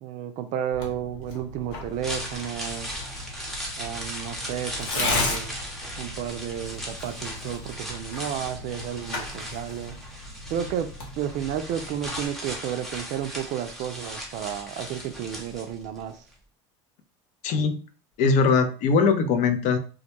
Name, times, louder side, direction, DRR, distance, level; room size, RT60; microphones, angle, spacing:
voice 1, 0.0-2.9 3.8-5.6 6.0-10.0 10.5-16.2, right 9 dB, 55° right, 0.4 m, -32 dB
Tearing, 0.7-12.3, left 3 dB, 70° left, 0.9 m, -35 dB
sound 1, 1.8-16.0 16.3-16.4, equal, ahead, 0.7 m, -38 dB
voice 2, 17.4-17.8 18.2-19.8, left 5 dB, 55° left, 0.5 m, -21 dB
2.2 x 2.1 x 2.9 m
hypercardioid pair, 90°, 15 cm